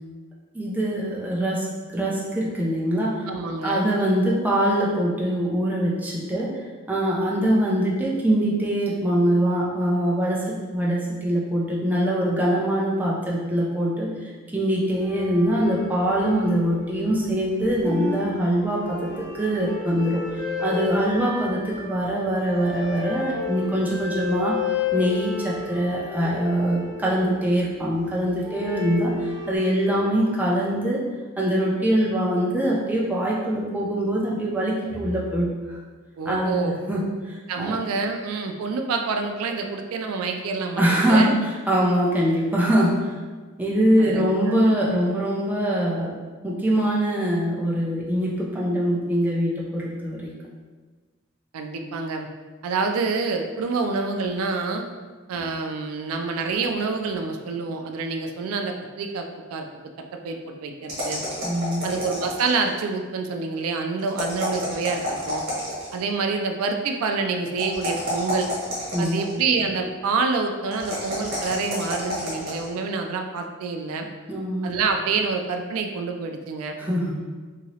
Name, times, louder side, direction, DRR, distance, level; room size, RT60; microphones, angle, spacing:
voice 1, 0.5-3.3 3.6-24.6 24.9-31.0 31.4-35.8 36.3-37.8 40.8-43.1 43.6-46.2 46.4-50.3 61.4-61.9 68.9-69.3 74.3-74.7 76.8-77.2, right 1 dB, 10° right, -5 dB, 0.4 m, -23 dB
voice 2, 3.3-3.9 36.2-36.8 37.5-41.4 44.0-44.5 51.5-52.3 52.6-54.8 55.3-59.7 60.2-61.2 61.8-65.4 65.9-68.5 69.0-74.1 74.6-76.8, right 4 dB, 85° right, 4 dB, 0.3 m, -27 dB
sound 1, 14.9-17.3 17.6-27.8 28.4-29.6, left 6 dB, 50° left, 0.7 m, -33 dB
sound 2, 60.9-62.7 64.1-66.0 67.6-69.4 70.7-72.7, equal, 45° right, 1.1 m, -30 dB
2.9 x 2.7 x 2.7 m, 1.4 s
head